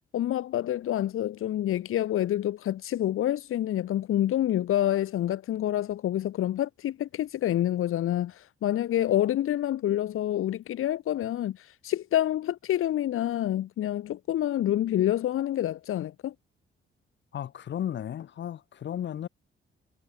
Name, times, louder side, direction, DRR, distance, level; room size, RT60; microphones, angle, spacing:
voice 1, 0.1-16.3, left 12 dB, 85° left, 1.2 m, -27 dB
voice 2, 17.3-19.3, left 10 dB, 60° left, 1.7 m, -34 dB
wide cardioid pair, 180°, 21 cm